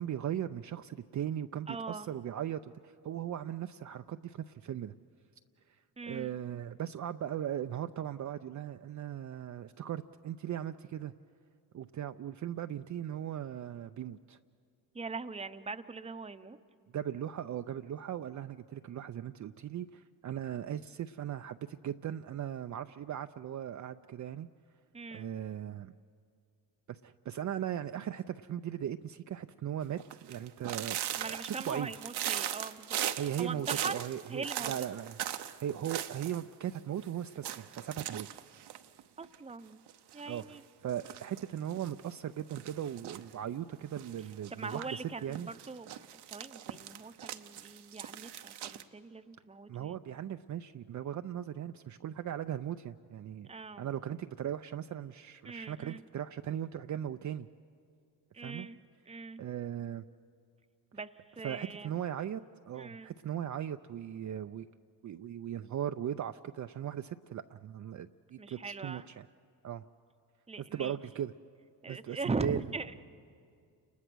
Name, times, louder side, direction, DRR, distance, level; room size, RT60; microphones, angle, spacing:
voice 1, 0.0-5.0 6.1-11.1 11.7-14.4 16.9-24.5 25.1-25.9 26.9-31.9 33.2-35.2 35.6-38.3 40.3-45.5 49.7-53.5 53.8-57.5 58.4-58.7 59.4-60.1 61.4-64.7 65.0-69.3 69.6-69.8 70.7-71.3 71.9-72.6, right 10 dB, 45° right, 8 dB, 0.5 m, -38 dB
voice 2, 1.7-2.1 6.0-6.4 14.9-16.6 24.9-25.3 31.2-34.7 39.2-39.8 40.1-40.6 44.5-50.0 53.5-53.9 55.4-56.0 58.3-58.8 59.1-59.4 60.9-62.0 62.8-63.1 68.4-69.1 70.5-71.0 71.8-73.0, right 4 dB, 15° right, 11 dB, 0.8 m, -41 dB
sound 1, 30.0-36.4 36.7-36.8 37.0-37.1 37.4-39.5 39.9-40.4 40.9-41.9 42.5-43.3 43.9-44.8 45.3-48.8, right 11 dB, 70° right, 0.9 m, -39 dB
29.5 x 20.5 x 6.2 m, 2.3 s
supercardioid pair, 65°, 41 cm